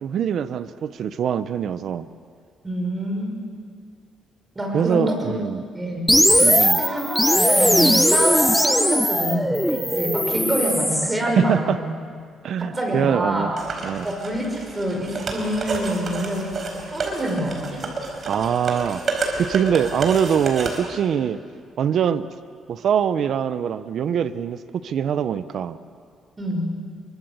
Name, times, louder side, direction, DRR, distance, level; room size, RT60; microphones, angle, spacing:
voice 1, 0.0-2.0 4.7-5.6 6.4-6.8 11.2-11.8 12.4-13.5 13.8-14.1 18.3-19.0 19.4-21.4 21.8-22.3 22.7-25.8, right 8 dB, 60° right, 13 dB, 0.8 m, -23 dB
voice 2, 2.6-3.3 4.6-5.3 5.7-6.1 6.6-11.9 12.7-13.5 14.0-17.8 26.4-26.7, equal, 15° right, 0 dB, 5.5 m, -27 dB
sound 1, 6.1-11.2, equal, ahead, 0.9 m, -19 dB
sound 2, 13.6-20.8, right 3 dB, 40° right, 4.5 m, -29 dB
27.0 x 23.0 x 8.1 m, 2.1 s
cardioid pair, 135°, 0 cm